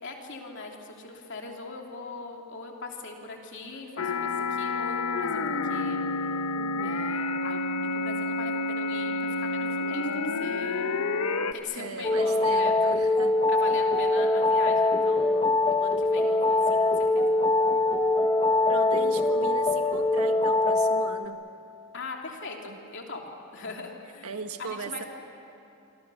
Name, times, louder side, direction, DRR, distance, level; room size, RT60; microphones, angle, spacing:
voice 1, 0.0-6.0 6.8-10.9 11.5-12.7 13.5-17.4 21.9-24.3 24.6-25.1, left 3 dB, 55° left, 1 dB, 3.1 m, -41 dB
sound 1, 4.0-11.5, left 3 dB, 80° left, 1.0 m, -29 dB
voice 2, 6.5-7.0 11.7-13.3 18.7-21.4 22.7-22.8 24.2-25.0, right 3 dB, 80° right, 7 dB, 1.6 m, -37 dB
sound 2, 12.0-21.2, left 2 dB, 20° left, 1.1 m, -23 dB
27.0 x 25.0 x 7.1 m, 2.8 s
head